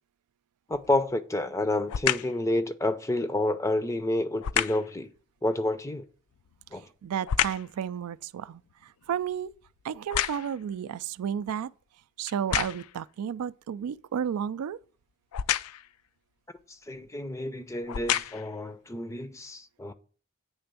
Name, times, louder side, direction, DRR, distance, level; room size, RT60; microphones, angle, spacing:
sound 1, 0.7-1.1 1.9-2.4 4.4-4.9 6.3-7.8 8.2-10.7 11.4-11.5 12.3-13.0 15.3-15.9 16.9-17.1 17.7-18.6 19.2-19.3, left 10 dB, 80° left, 0.4 m, -30 dB
voice 1, 0.7-5.1 5.4-6.0 6.7-6.9 16.7-19.9, left 1 dB, 15° left, 0.4 m, -29 dB
voice 2, 6.7-9.5 9.8-11.7 12.2-14.8, right 8 dB, 85° right, 0.3 m, -32 dB
8.8 x 3.4 x 6.7 m
head